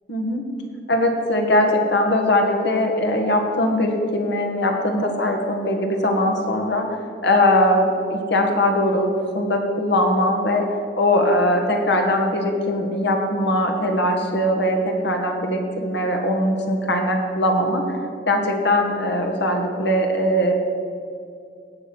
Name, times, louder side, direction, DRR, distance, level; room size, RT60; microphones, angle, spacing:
voice 1, 0.1-0.4 0.9-6.9 7.2-10.7 11.0-17.8 18.3-20.5, left 1 dB, 65° left, 2 dB, 2.0 m, -20 dB
17.5 x 6.9 x 6.4 m, 2.4 s
head